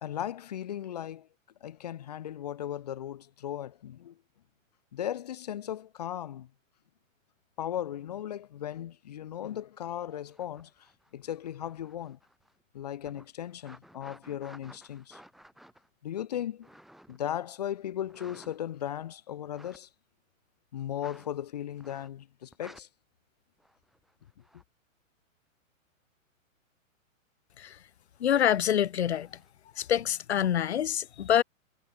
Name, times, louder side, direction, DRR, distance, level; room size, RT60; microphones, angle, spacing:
voice 1, 0.0-1.3 1.6-4.2 4.9-6.5 7.6-10.7 11.1-12.2 12.7-15.2 16.0-16.7 17.1-19.9 20.7-22.9, left 11 dB, 30° left, 1.0 m, -37 dB
sound 1, 10.1-12.6 13.0-17.3 18.0-18.9 19.4-19.8 21.0-21.3 21.8-22.2 22.5-22.8 23.6-24.6 29.1-29.5, equal, ahead, 5.6 m, -55 dB
voice 2, 28.2-29.3 29.8-31.4, left 10 dB, 55° left, 1.1 m, -25 dB
hypercardioid pair, 180°, 41 cm